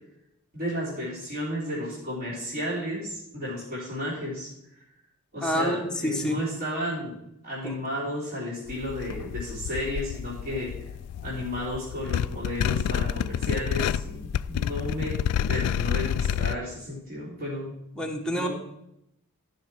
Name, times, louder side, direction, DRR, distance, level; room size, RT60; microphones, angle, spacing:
voice 1, 0.5-4.5 5.3-7.2 7.4-10.7 11.2-15.2 15.5-17.7 18.3-18.5, equal, 40° right, -8 dB, 3.7 m, -33 dB
voice 2, 5.4-6.4 7.6-7.8 18.0-18.5, left 1 dB, 5° left, 1 dB, 1.1 m, -27 dB
sound 1, 8.7-16.6, left 8 dB, 90° left, 0.3 m, -29 dB
13.5 x 5.8 x 4.5 m, 0.82 s
head